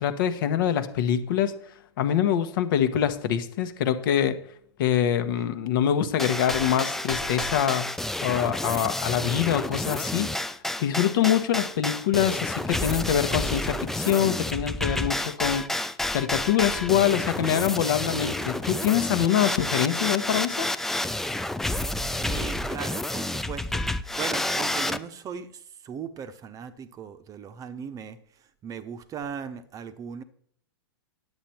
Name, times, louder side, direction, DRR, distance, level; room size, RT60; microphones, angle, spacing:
voice 1, 0.0-1.5 2.0-4.4 4.8-7.9 8.2-10.3 10.8-15.6 16.1-20.7, left 10 dB, 55° left, 10 dB, 1.1 m, -24 dB
sound 1, 6.2-25.0, left 1 dB, 5° left, 0.4 m, -30 dB
voice 2, 22.1-30.2, right 7 dB, 25° right, 12 dB, 0.8 m, -38 dB
10.0 x 8.0 x 4.4 m, 0.65 s
figure-of-eight pair, 100°, 13 cm